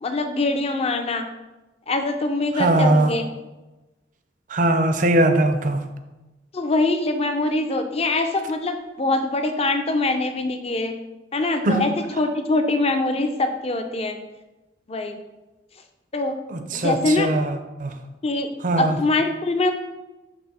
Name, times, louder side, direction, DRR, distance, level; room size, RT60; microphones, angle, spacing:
voice 1, 0.0-1.2 1.9-3.2 6.5-10.9 11.3-11.9 12.2-14.2 14.9-15.2 16.1-16.4 16.7-17.3 18.2-18.5 18.8-19.7, left 2 dB, 35° left, 0.6 m, -23 dB
voice 2, 2.5-3.1 4.5-5.8 11.6-11.8 16.5-18.0 18.6-18.9, right 1 dB, 45° right, 0.6 m, -20 dB
6.1 x 3.4 x 5.8 m
head